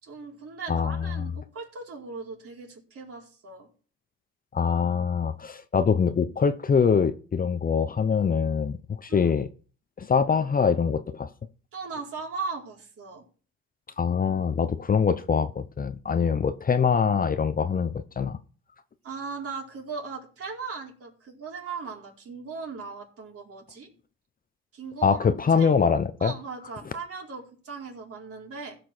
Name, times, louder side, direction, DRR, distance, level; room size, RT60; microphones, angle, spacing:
voice 1, 0.0-3.7 9.1-9.3 11.7-13.2 19.0-23.9 24.7-25.7 26.2-28.8, right 4 dB, 50° right, 4.3 m, -38 dB
voice 2, 0.7-1.3 4.5-9.5 10.0-11.3 14.0-18.4 25.0-26.3, left 6 dB, 30° left, 0.8 m, -24 dB
15.5 x 6.2 x 4.5 m
supercardioid pair, 80°, 30 cm